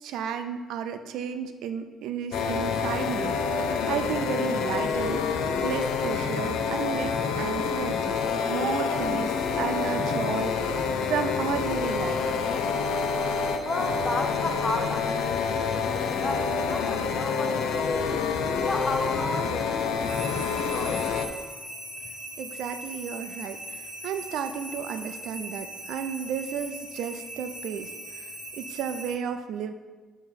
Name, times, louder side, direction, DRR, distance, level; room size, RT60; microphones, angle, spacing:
voice 1, 0.0-8.2 8.5-10.7 11.1-12.4 22.4-28.3 28.6-29.7, right 7 dB, 80° right, 8 dB, 0.5 m, -33 dB
sound 1, 2.3-21.3, left 5 dB, 85° left, 0.5 m, -27 dB
sound 2, 12.7-29.1, equal, 5° right, 1.4 m, -41 dB
voice 2, 13.6-18.0 18.6-21.2, left 2 dB, 20° left, 4 dB, 0.6 m, -33 dB
7.0 x 3.0 x 5.6 m, 1.3 s
cardioid pair, 155°, 0 cm